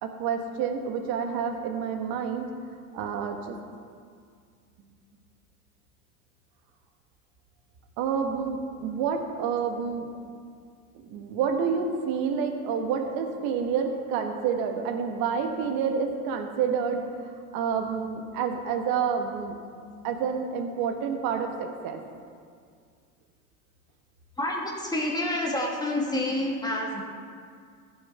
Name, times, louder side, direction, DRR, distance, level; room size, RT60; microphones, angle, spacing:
voice 1, 0.0-2.5 2.9-3.6 8.0-10.1 11.0-17.0 17.5-19.6 20.0-22.0, right 6 dB, 55° right, 4 dB, 1.5 m, -28 dB
voice 2, 24.4-27.0, left 1 dB, 10° left, -2 dB, 2.2 m, -28 dB
15.0 x 6.1 x 4.4 m, 2.1 s
hypercardioid pair, 90°, 44 cm